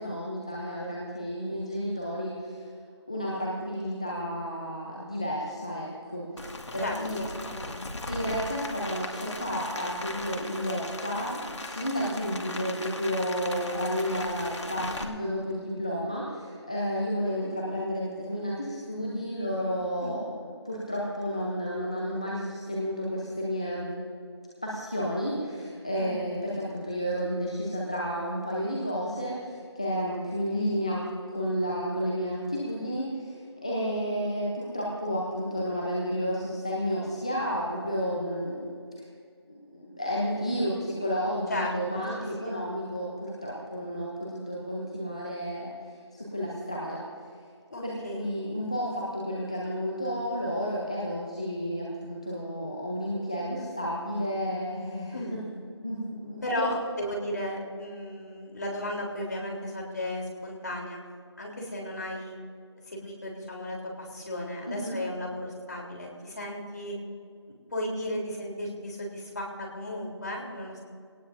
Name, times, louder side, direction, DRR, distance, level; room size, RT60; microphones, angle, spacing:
voice 1, 0.0-2.7 3.1-7.2 8.1-20.3 20.6-23.9 24.6-39.0 39.5-47.0 47.8-55.4 55.8-56.7 64.7-65.0, equal, 15° left, -4 dB, 0.7 m, -31 dB
Rain, 6.4-15.0, left 2 dB, 80° left, 2.0 m, -38 dB
voice 2, 6.8-7.8 12.0-12.2 17.2-17.5 20.0-20.2 25.9-26.2 32.6-32.8 41.5-42.0 47.7-48.3 55.1-55.4 56.4-61.0 61.4-62.3 62.9-67.0 67.7-70.8, left 1 dB, 40° left, -2 dB, 3.5 m, -35 dB
21.0 x 18.5 x 2.7 m, 2.3 s
figure-of-eight pair, 180°, 15 cm